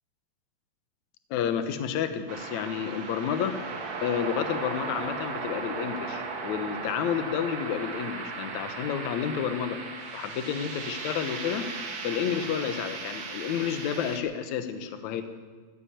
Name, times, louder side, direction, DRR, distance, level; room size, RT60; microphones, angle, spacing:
voice 1, 1.3-3.6 4.0-9.8 10.1-11.7 12.0-15.2, left 8 dB, 65° left, 9 dB, 2.1 m, -30 dB
sound 1, 2.3-14.2, right 4 dB, 50° right, 1.6 m, -36 dB
14.0 x 11.5 x 8.6 m, 1.4 s
omnidirectional pair, 4.2 m